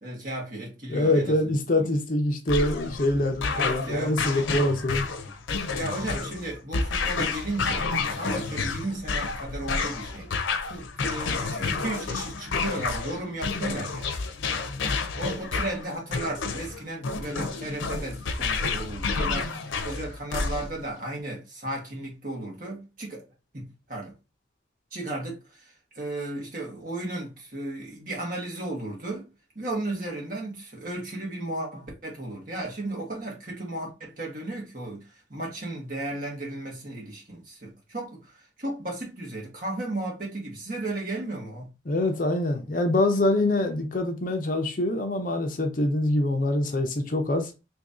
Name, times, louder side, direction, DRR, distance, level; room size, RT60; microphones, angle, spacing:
voice 1, 0.0-1.9 3.5-4.4 5.7-10.3 10.7-14.1 15.1-23.2 23.5-24.1 24.9-29.3 29.5-41.7, right 2 dB, 45° right, 1.4 m, -35 dB
voice 2, 0.9-5.0 41.9-47.5, left 1 dB, 45° left, 0.6 m, -25 dB
sound 1, 2.5-20.9, left 4 dB, 90° left, 0.5 m, -30 dB
3.0 x 2.7 x 3.6 m
head